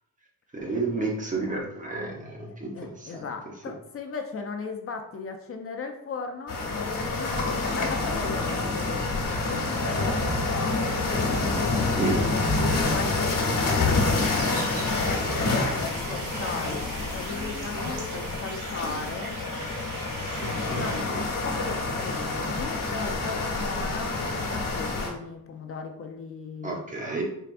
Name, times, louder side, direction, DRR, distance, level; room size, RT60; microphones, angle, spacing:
voice 1, 0.5-3.2 12.0-12.2 20.4-21.2 26.6-27.2, right 3 dB, 25° right, -1 dB, 0.9 m, -31 dB
voice 2, 2.5-10.8 12.6-19.4 20.3-26.8, left 4 dB, 45° left, 4 dB, 0.4 m, -37 dB
sound 1, 6.5-25.1, left 3 dB, 70° left, 1.1 m, -27 dB
sound 2, 7.3-22.5, right 1 dB, 40° right, 1.5 m, -40 dB
sound 3, 14.2-21.0, right 3 dB, 75° right, 0.9 m, -40 dB
4.6 x 3.3 x 2.5 m, 0.80 s
wide cardioid pair, 140°, 33 cm